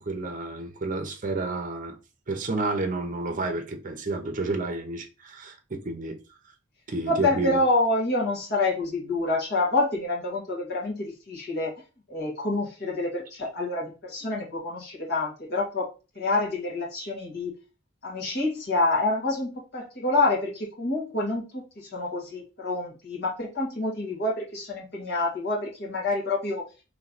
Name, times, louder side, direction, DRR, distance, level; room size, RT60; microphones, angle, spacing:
voice 1, 0.0-2.0 2.3-6.2 6.9-7.6, right 2 dB, 40° right, 0.7 m, -30 dB
voice 2, 7.1-11.7 12.1-15.9 16.2-17.5 18.0-26.6, left 2 dB, 55° left, 1.8 m, -27 dB
3.3 x 3.1 x 3.9 m
head